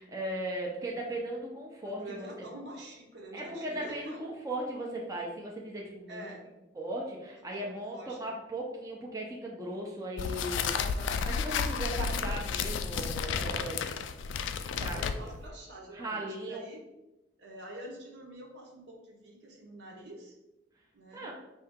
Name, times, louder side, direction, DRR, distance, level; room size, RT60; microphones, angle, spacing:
voice 1, 0.0-2.3 3.3-6.3 6.7-10.7 11.3-13.8 14.8-15.3 15.9-16.6 21.1-21.3, right 1 dB, 20° right, -2 dB, 0.6 m, -37 dB
voice 2, 1.8-4.3 6.1-6.5 7.5-8.4 10.7-11.4 14.9-16.8 17.4-20.3 20.9-21.3, right 1 dB, 65° right, 0 dB, 1.0 m, -46 dB
sound 1, 10.2-15.5, left 6 dB, 90° left, 0.3 m, -32 dB
5.3 x 2.8 x 3.6 m, 0.98 s
head